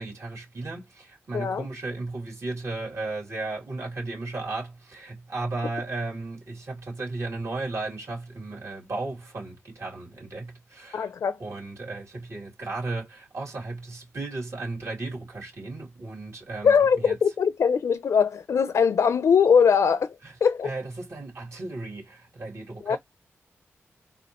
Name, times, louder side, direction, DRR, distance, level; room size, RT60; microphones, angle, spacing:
voice 1, 0.0-11.1 11.4-17.2 20.2-20.3 20.6-23.0, right 2 dB, 65° right, 2.7 m, -35 dB
voice 2, 1.3-1.7 10.9-11.4 16.6-20.2 20.4-20.7 22.8-23.0, left 6 dB, 75° left, 0.4 m, -21 dB
4.1 x 2.4 x 2.9 m
cardioid pair, 50°, 5 cm